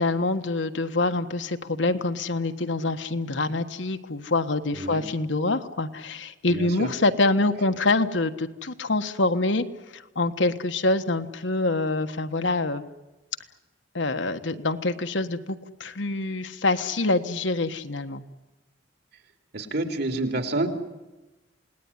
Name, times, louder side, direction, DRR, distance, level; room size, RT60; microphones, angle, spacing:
voice 1, 0.0-9.6 9.9-12.8 13.9-18.2, left 2 dB, 75° left, 8 dB, 1.5 m, -25 dB
voice 2, 4.7-5.0 6.5-6.9 19.5-20.7, right 2 dB, 60° right, 6 dB, 3.2 m, -28 dB
28.0 x 19.0 x 9.9 m, 1.1 s
head